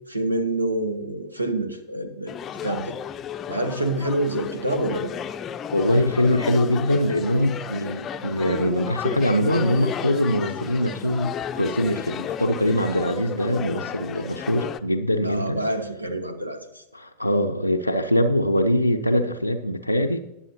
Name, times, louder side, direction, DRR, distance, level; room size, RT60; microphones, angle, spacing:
voice 1, 0.1-2.3 2.6-3.0 3.5-5.1 15.2-16.8, right 1 dB, 85° right, 9 dB, 1.3 m, -27 dB
sound 1, 2.3-14.8, left 8 dB, 25° left, 0.6 m, -33 dB
voice 2, 5.7-15.6 16.9-20.2, equal, 90° left, 1 dB, 0.6 m, -23 dB
20.0 x 7.6 x 2.8 m, 0.89 s
figure-of-eight pair, 90°, 0 cm